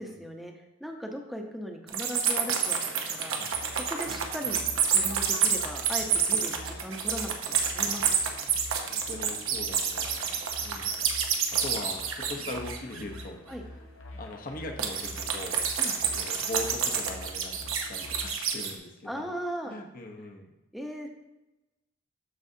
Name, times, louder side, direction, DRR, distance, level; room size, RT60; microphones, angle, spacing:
voice 1, 0.0-4.6 4.9-8.5 13.5-13.6 15.8-15.9 19.1-19.8 20.7-21.1, equal, ahead, 2 dB, 0.8 m, -38 dB
sound 1, 1.9-13.2 14.8-18.7, right 7 dB, 90° right, 0.9 m, -28 dB
voice 2, 3.3-3.6 4.1-4.2 7.8-8.0 8.9-10.4 10.6-10.9 11.6-13.8 14.1-15.7 16.0-19.3 19.6-20.5, left 1 dB, 45° left, 2 dB, 1.0 m, -40 dB
sound 2, 3.5-18.3, left 1 dB, 80° left, 1.0 m, -46 dB
13.0 x 4.8 x 2.7 m, 0.99 s
head